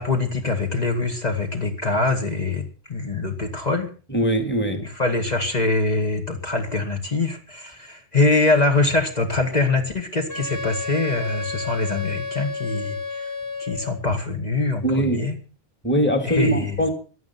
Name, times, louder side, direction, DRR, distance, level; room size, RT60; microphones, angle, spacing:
voice 1, 0.0-2.6 2.9-3.9 4.8-13.3 13.6-15.4 16.2-16.9, left 3 dB, 40° left, 2 dB, 2.2 m, -23 dB
voice 2, 4.1-4.8 14.8-15.2 15.8-16.9, right 1 dB, 10° left, 5 dB, 2.4 m, -21 dB
Wind instrument woodwind instrument, 10.3-14.0, left 3 dB, 60° left, 2.3 m, -31 dB
16.5 x 11.5 x 5.9 m, 0.38 s
omnidirectional pair, 1.1 m